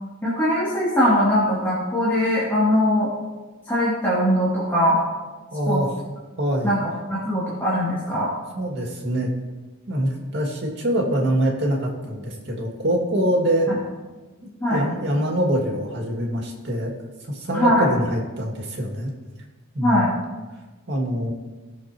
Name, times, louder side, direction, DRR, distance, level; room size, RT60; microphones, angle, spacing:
voice 1, 0.2-3.1 3.7-5.0 5.7-5.8 6.6-6.8 7.1-8.3 13.7-13.8 14.6-14.8 17.5-17.9 19.8-20.1, equal, 10° left, -9 dB, 2.6 m, -21 dB
voice 2, 5.5-5.9 6.4-6.7 8.5-9.3 9.9-13.7 14.4-16.9 17.3-19.1 19.7-20.1 20.9-21.3, right 1 dB, 55° right, 0 dB, 2.1 m, -24 dB
18.0 x 6.7 x 3.0 m, 1.3 s
head